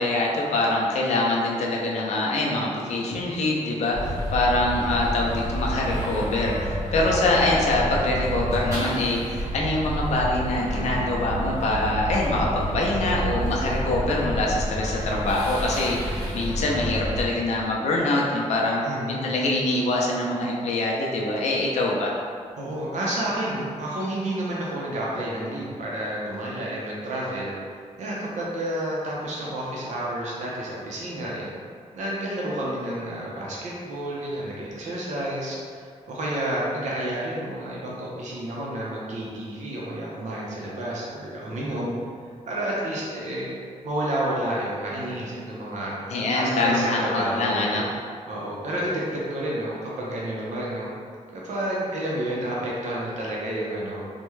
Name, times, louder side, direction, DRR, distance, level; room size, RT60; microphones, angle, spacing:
voice 1, 0.0-18.8 19.1-22.1 46.1-47.8, left 2 dB, 65° left, -2 dB, 0.5 m, -24 dB
sound 1, 3.9-17.3, right 1 dB, 25° right, 0.8 m, -29 dB
voice 2, 18.8-19.3 22.6-27.5 28.0-31.5 31.9-41.9 42.5-43.5 43.8-45.9 46.3-47.8 48.3-50.9 51.3-54.0, right 1 dB, 75° right, -5 dB, 0.6 m, -30 dB
3.4 x 2.1 x 3.1 m, 2.1 s
wide cardioid pair, 180°, 12 cm